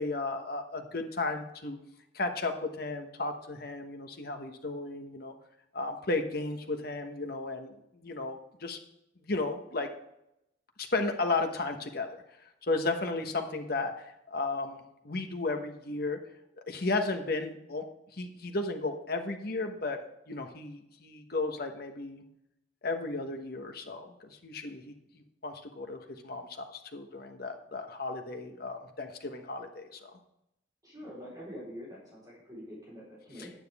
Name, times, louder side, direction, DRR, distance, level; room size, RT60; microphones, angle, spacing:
voice 1, 0.0-1.8 2.1-5.3 5.7-8.8 9.3-9.9 10.8-12.1 12.6-16.2 16.7-17.8 18.1-20.0 20.3-22.2 22.8-30.1 33.4-33.5, left 3 dB, 55° left, 5 dB, 1.3 m, -34 dB
voice 2, 30.8-33.5, equal, 20° right, -8 dB, 4.2 m, -45 dB
10.5 x 9.3 x 3.6 m, 0.81 s
head